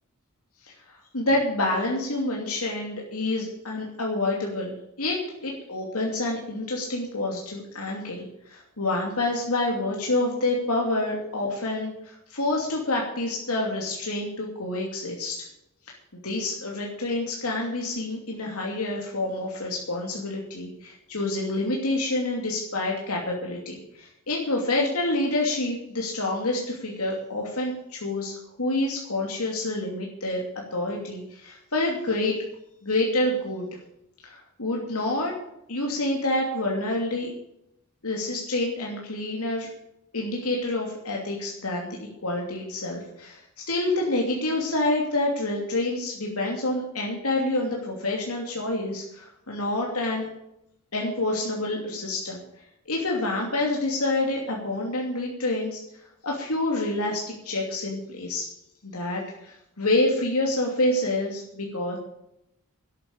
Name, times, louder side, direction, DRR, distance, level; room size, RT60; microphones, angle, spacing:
voice 1, 0.6-15.4 15.9-16.0 16.2-30.4 30.7-32.3 32.8-33.7 34.2-35.3 35.7-37.3 38.0-39.7 40.1-41.9 42.2-50.3 50.9-52.4 52.9-55.8 56.2-58.5 58.8-62.0, left 2 dB, 85° left, -1 dB, 2.7 m, -28 dB
12.0 x 9.5 x 7.1 m, 0.83 s
head